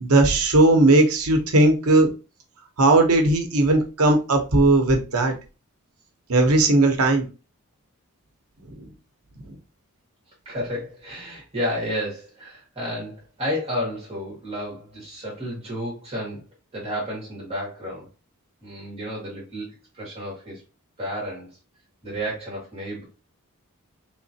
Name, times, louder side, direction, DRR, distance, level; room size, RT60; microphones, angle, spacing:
voice 1, 0.0-2.1 2.8-5.3 6.3-7.2, right 2 dB, 80° right, 4 dB, 0.9 m, -17 dB
voice 2, 10.4-16.4 16.7-18.1 18.6-20.6 21.0-21.5 22.0-23.0, equal, 30° right, -5 dB, 1.7 m, -31 dB
3.6 x 3.0 x 2.8 m, 0.31 s
head